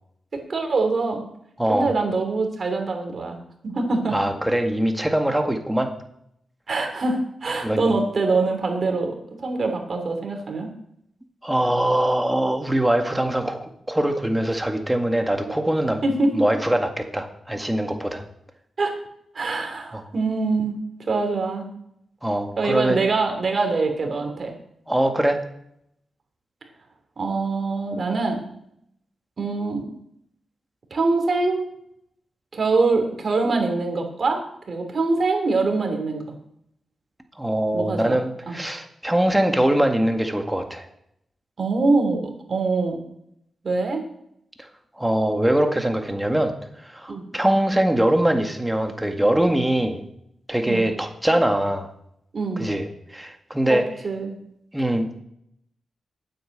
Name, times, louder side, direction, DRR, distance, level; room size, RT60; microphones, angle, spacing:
voice 1, 0.5-1.2 1.7-4.2 6.7-10.7 15.5-15.6 16.0-16.3 18.8-18.9 19.3-20.7 21.1-21.7 22.6-24.6 27.2-28.4 29.4-29.9 30.9-31.7 32.5-34.4 34.7-36.2 37.7-38.2 38.5-38.6 41.6-43.0 43.6-44.0 47.1-47.2 50.6-50.8 52.3-52.7 53.7-53.8 54.0-54.4, right 3 dB, 50° right, 4 dB, 3.1 m, -24 dB
voice 2, 1.6-1.9 4.1-5.9 7.6-7.9 11.4-16.0 16.3-18.2 19.9-20.0 22.2-23.1 24.9-25.4 37.4-40.9 45.0-46.5 46.8-50.0 50.5-51.9 52.6-52.9 53.1-53.9 54.7-55.2, right 1 dB, 10° right, 5 dB, 1.9 m, -22 dB
9.4 x 8.1 x 8.0 m, 0.74 s
cardioid pair, 75°, 0 cm